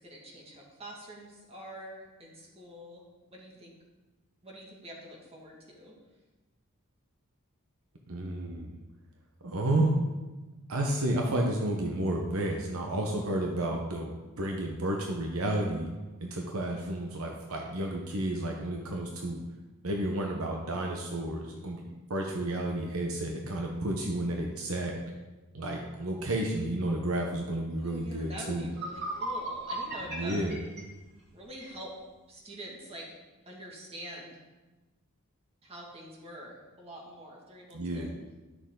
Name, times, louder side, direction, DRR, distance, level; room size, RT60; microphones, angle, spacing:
voice 1, 0.0-3.7 4.4-5.9 27.8-30.5 31.3-31.9 32.3-33.1 33.5-34.4 35.6-38.1, equal, 30° right, -3 dB, 2.0 m, -46 dB
voice 2, 8.1-8.8 9.4-10.0 10.7-15.9 16.2-19.4 19.8-21.8 22.1-24.9 25.5-28.7 30.1-30.6 37.7-38.1, right 1 dB, 70° right, 1 dB, 1.0 m, -31 dB
sound 1, 28.6-31.7, right 1 dB, 55° right, 2.7 m, -37 dB
11.0 x 6.5 x 3.9 m, 1.2 s
head